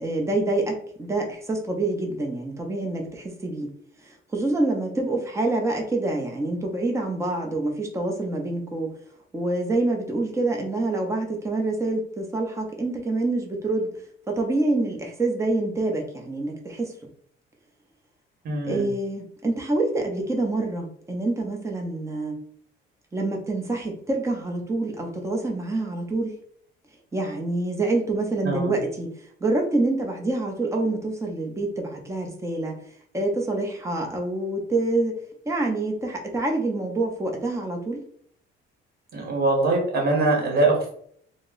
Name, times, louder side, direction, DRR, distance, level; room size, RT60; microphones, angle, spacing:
voice 1, 0.0-3.7 4.3-8.9 9.3-13.9 14.3-16.9 18.6-22.4 23.1-26.3 27.1-29.1 29.4-32.7 33.1-35.2 35.5-38.0, right 2 dB, 15° right, 1 dB, 0.6 m, -26 dB
voice 2, 18.4-18.9 28.4-28.7 39.1-40.9, right 2 dB, 50° right, 0 dB, 1.1 m, -22 dB
2.2 x 2.0 x 3.8 m, 0.63 s
cardioid pair, 120°, 21 cm